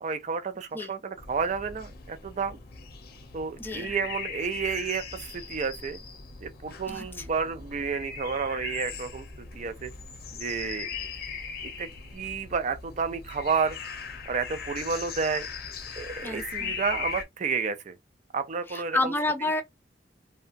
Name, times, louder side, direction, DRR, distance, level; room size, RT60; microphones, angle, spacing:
voice 1, 0.0-2.6 3.3-6.0 6.4-9.9 10.3-10.9 11.6-13.8 14.3-15.5 16.0-18.0 18.3-19.1, right 5 dB, 40° right, 0.4 m, -31 dB
sound 1, 1.2-17.2, left 5 dB, 60° left, 0.6 m, -39 dB
voice 2, 3.6-3.9 6.9-7.3 16.2-16.7 18.7-19.6, left 2 dB, 10° left, 0.5 m, -30 dB
2.8 x 2.2 x 2.4 m
head